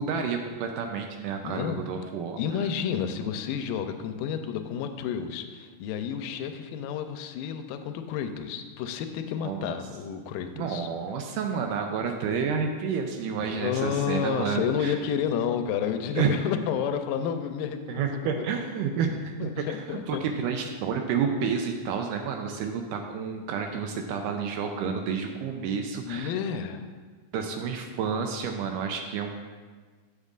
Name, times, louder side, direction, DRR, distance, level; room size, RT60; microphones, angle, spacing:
voice 1, 0.0-2.4 9.5-9.8 10.6-15.0 16.2-16.3 17.9-19.8 20.1-26.3 27.3-29.4, right 6 dB, 80° right, 4 dB, 2.1 m, -30 dB
voice 2, 1.4-1.9 2.4-10.9 13.4-18.3 19.4-20.3 26.0-26.8, left 8 dB, 85° left, 8 dB, 2.3 m, -30 dB
13.0 x 7.2 x 2.4 m, 1.5 s
omnidirectional pair, 3.9 m